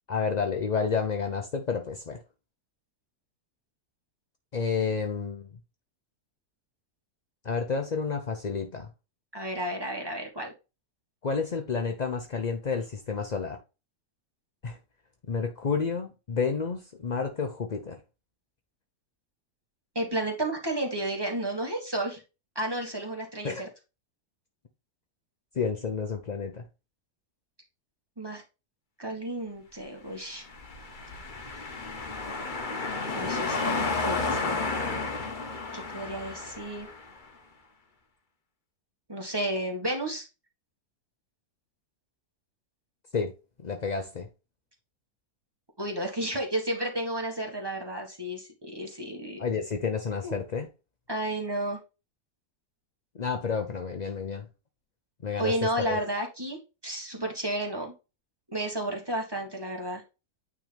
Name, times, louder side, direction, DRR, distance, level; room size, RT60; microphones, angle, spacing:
voice 1, 0.1-2.2 4.5-5.5 7.4-8.9 11.2-13.6 14.6-14.8 15.3-18.0 23.4-23.6 25.5-26.6 43.1-43.3 43.6-44.3 49.4-50.7 53.2-54.5 55.2-56.0, left 5 dB, 55° left, 0.4 m, -30 dB
voice 2, 9.3-10.5 19.9-22.2 22.5-23.7 28.2-28.4 29.0-30.5 33.1-35.0 35.7-36.9 39.1-40.3 45.8-49.4 50.2-50.3 51.1-51.8 55.4-57.9 58.5-60.0, right 1 dB, 15° right, 1.5 m, -32 dB
sound 1, 30.4-37.2, left 3 dB, 35° left, 1.0 m, -32 dB
9.1 x 3.8 x 3.4 m
omnidirectional pair, 1.7 m